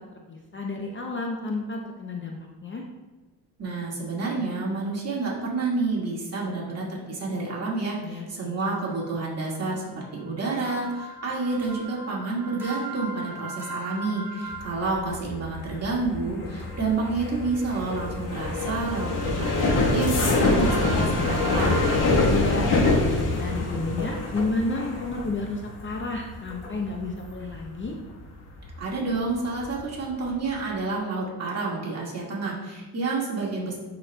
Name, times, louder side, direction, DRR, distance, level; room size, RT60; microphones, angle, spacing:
voice 1, 0.3-2.8 8.0-8.7 22.1-28.0, left 3 dB, 30° left, 1 dB, 0.6 m, -31 dB
voice 2, 3.6-9.8 10.1-21.9 28.8-33.8, right 3 dB, 40° right, -4 dB, 1.8 m, -29 dB
sound 1, 8.6-15.0 16.6-22.0, right 1 dB, 5° right, 1.8 m, -40 dB
sound 2, 14.5-29.1 29.5-29.9 30.2-30.5, left 2 dB, 75° left, 1.4 m, -26 dB
10.5 x 4.2 x 2.2 m, 1.2 s
cardioid pair, 125°, 39 cm